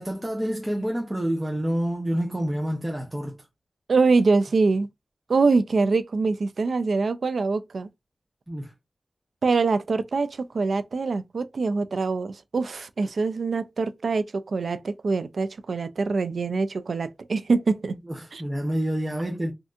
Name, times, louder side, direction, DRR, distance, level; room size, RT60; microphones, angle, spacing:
voice 1, 0.0-3.4 8.5-8.7 18.0-19.5, equal, 20° right, 0.7 m, -28 dB
voice 2, 3.9-4.9 5.3-7.9 9.4-18.0 18.3-18.4, right 4 dB, 85° right, 0.3 m, -24 dB
3.3 x 2.6 x 2.4 m
wide cardioid pair, 65°, 0 cm